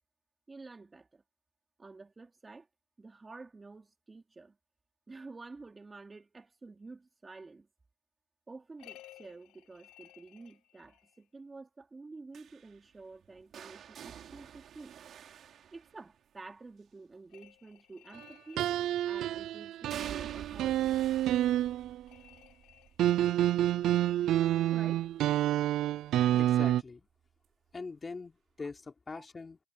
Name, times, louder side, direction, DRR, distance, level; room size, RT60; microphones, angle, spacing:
voice 1, 0.5-1.2 1.8-2.7 3.0-4.5 5.1-7.7 8.5-14.9 15.7-18.7 19.0-21.0 24.7-25.1 28.6-28.7 29.2-29.3, right 3 dB, 25° right, 3.4 m, -50 dB
sound 1, 8.8-11.3 17.3-19.4 22.1-23.6, left 15 dB, 90° left, 5.5 m, -57 dB
sound 2, 12.3-16.4 18.6-19.2 19.9-25.7 26.1-26.5 27.7-27.8, right 9 dB, 65° right, 5.7 m, -49 dB
sound 3, 18.6-22.1 23.0-26.8, right 13 dB, 80° right, 0.4 m, -28 dB
voice 2, 26.3-27.1 27.7-29.6, left 4 dB, 30° left, 4.2 m, -42 dB
cardioid pair, 80°, 0 cm